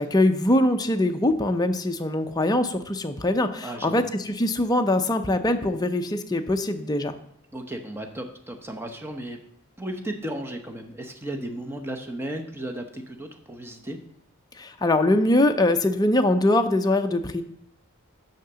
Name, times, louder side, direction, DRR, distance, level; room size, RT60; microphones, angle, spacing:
voice 1, 0.0-7.2 14.6-17.4, left 1 dB, 15° left, 6 dB, 0.5 m, -22 dB
voice 2, 3.6-4.0 7.5-9.4 9.8-14.0, right 1 dB, 10° right, 4 dB, 0.8 m, -35 dB
6.5 x 5.7 x 6.7 m, 0.75 s
head